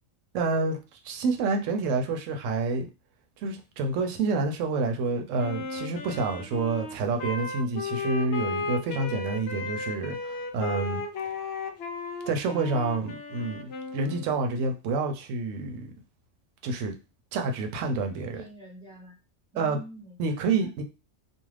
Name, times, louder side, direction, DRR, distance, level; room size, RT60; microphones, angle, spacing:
voice 1, 0.3-0.8 1.0-2.9 3.4-11.0 12.3-15.9 16.6-16.9 17.3-18.4 19.6-19.8 20.2-20.8, right 3 dB, 85° right, 0.9 m, -28 dB
Wind instrument woodwind instrument, 5.4-14.4, left 3 dB, 65° left, 0.7 m, -35 dB
voice 2, 18.1-19.2 19.5-20.7, right 2 dB, 5° left, 1.0 m, -46 dB
2.4 x 2.3 x 3.2 m
omnidirectional pair, 1.3 m